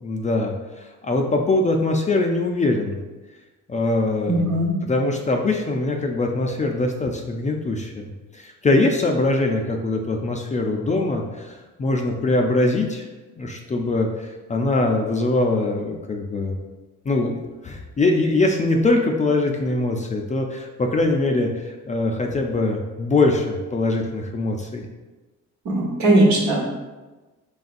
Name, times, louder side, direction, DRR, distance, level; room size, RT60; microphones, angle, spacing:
voice 1, 0.0-3.0 3.7-13.0 13.4-16.5 17.1-17.4 17.6-24.8, left 2 dB, 25° left, 2 dB, 0.4 m, -22 dB
voice 2, 4.3-4.7 25.6-26.6, right 1 dB, 70° right, -2 dB, 1.1 m, -18 dB
3.9 x 3.3 x 2.5 m, 1.2 s
cardioid pair, 90°, 30 cm